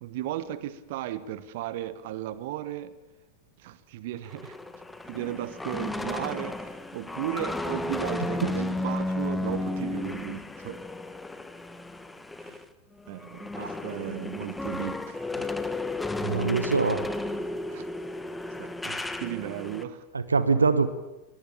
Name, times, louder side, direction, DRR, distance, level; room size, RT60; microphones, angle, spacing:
voice 1, 0.0-2.9 3.6-4.6 5.0-10.8 12.4-12.6 13.1-15.7 17.7-17.9 18.6-20.0, right 13 dB, 50° right, 16 dB, 1.2 m, -36 dB
sound 1, 4.2-12.6 13.0-19.8, left 2 dB, 5° left, 1.5 m, -33 dB
voice 2, 16.2-17.1 20.1-20.9, right 4 dB, 75° right, 14 dB, 1.1 m, -24 dB
22.5 x 19.5 x 8.7 m, 1.0 s
figure-of-eight pair, 90°, 0 cm